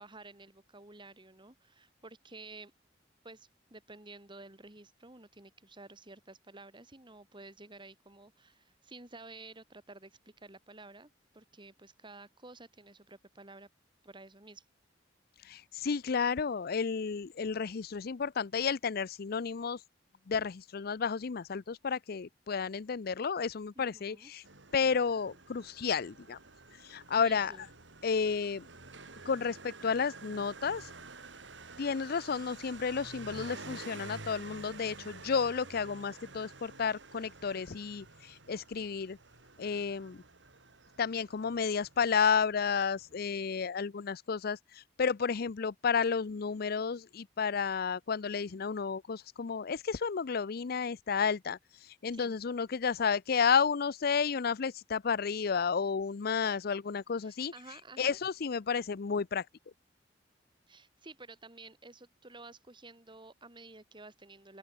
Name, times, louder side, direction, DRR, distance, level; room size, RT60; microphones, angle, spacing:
voice 1, 0.0-2.7 3.2-13.7 14.0-14.7 23.8-24.3 27.1-27.7 52.1-52.3 57.2-58.2 60.7-64.6, right 2 dB, 25° right, 3.8 m, -52 dB
voice 2, 15.4-19.8 20.3-24.4 24.7-26.4 26.8-27.5 28.0-28.7 29.3-30.9 31.8-39.2 39.6-40.2 41.0-51.6 52.0-57.5 58.0-59.4, left 6 dB, 55° left, 0.5 m, -32 dB
Motorcycle, 24.4-43.2, right 3 dB, 90° right, 4.8 m, -50 dB
open air
head